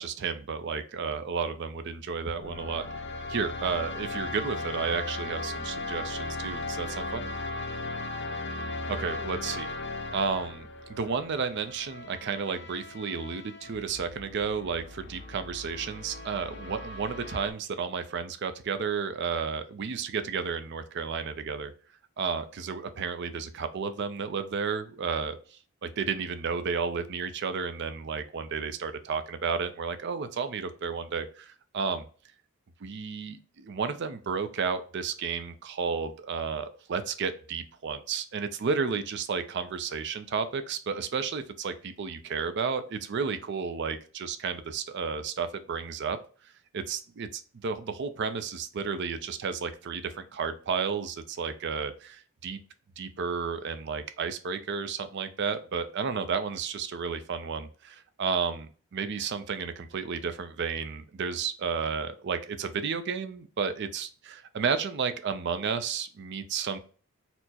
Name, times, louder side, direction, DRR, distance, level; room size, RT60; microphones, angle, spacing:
voice 1, 0.0-7.3 8.9-9.7 10.1-21.7 22.2-32.0 32.8-46.2 46.7-52.6 53.0-66.8, right 5 dB, 50° right, 10 dB, 0.4 m, -32 dB
sound 1, 2.4-17.5, left 2 dB, 50° left, 0.4 m, -37 dB
4.3 x 2.0 x 2.8 m, 0.40 s
head